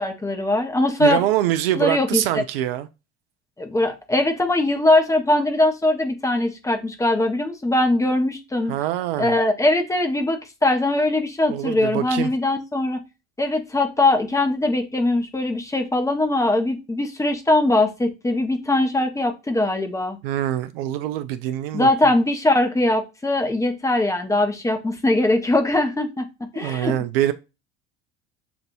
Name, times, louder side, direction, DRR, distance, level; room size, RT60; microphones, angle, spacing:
voice 1, 0.0-1.2 1.8-2.2 3.6-8.7 9.2-13.0 13.4-20.2 21.7-26.3 26.5-26.9, left 2 dB, 10° left, 0.8 m, -21 dB
voice 2, 1.0-2.9 8.7-9.3 11.5-12.3 20.2-21.9 26.5-27.3, right 13 dB, 55° right, 0.4 m, -24 dB
6.9 x 2.6 x 2.6 m
figure-of-eight pair, 70°, 35 cm